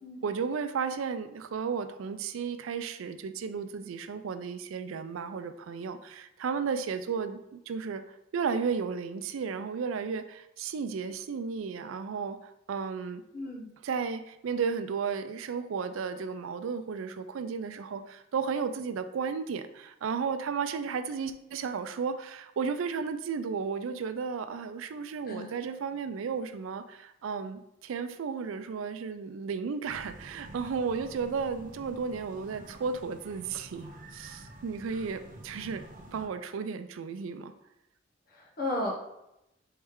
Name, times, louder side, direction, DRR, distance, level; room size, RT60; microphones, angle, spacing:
voice 1, 0.2-8.0 8.3-13.2 13.8-35.8 36.1-37.5, right 5 dB, 85° right, 10 dB, 0.4 m, -34 dB
voice 2, 13.3-13.7 25.3-25.5 38.3-38.9, left 1 dB, 50° left, -2 dB, 0.9 m, -34 dB
sound 1, 29.9-36.3, right 1 dB, 40° right, 0.6 m, -49 dB
4.5 x 3.2 x 3.6 m, 0.86 s
head